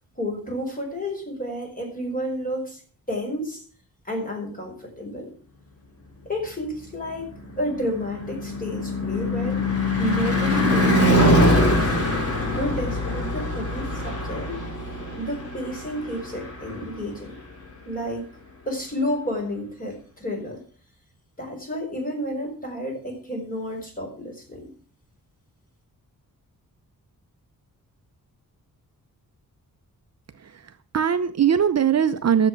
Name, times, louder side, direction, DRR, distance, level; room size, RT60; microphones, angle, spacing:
voice 1, 0.2-2.8 3.1-3.6 4.0-5.3 6.2-7.3 7.6-9.7 10.0-11.9 12.5-14.6 15.2-17.4 17.8-18.2 18.6-20.6 21.4-24.7, equal, 25° left, 1 dB, 5.0 m, -31 dB
Car passing by / Truck / Engine, 7.0-17.3, left 1 dB, 40° left, 3.8 m, -23 dB
voice 2, 30.4-32.5, right 8 dB, 45° right, 9 dB, 0.7 m, -21 dB
12.5 x 7.6 x 6.1 m, 0.43 s
wide cardioid pair, 115°, 35 cm